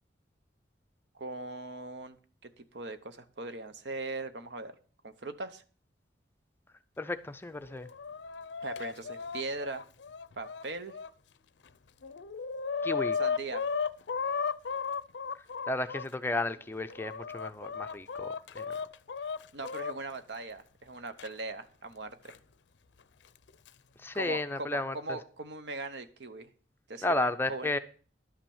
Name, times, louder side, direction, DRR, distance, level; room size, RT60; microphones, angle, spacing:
voice 1, 1.1-2.2 2.4-4.7 5.0-5.6 8.6-9.8 10.4-10.9 13.2-13.6 19.5-22.4 24.1-26.5 26.9-27.7, right 3 dB, 70° right, 10 dB, 0.9 m, -40 dB
voice 2, 7.0-7.9 12.8-13.2 15.7-18.7 24.0-25.2 27.0-27.8, left 2 dB, 10° left, 9 dB, 0.5 m, -33 dB
Chicken rooster, 7.6-11.1 11.7-11.8 12.0-16.1 16.7-19.9 21.2-21.3 22.3-22.4 23.4-23.7, left 5 dB, 70° left, 0.5 m, -35 dB
11.5 x 5.9 x 7.1 m, 0.40 s
head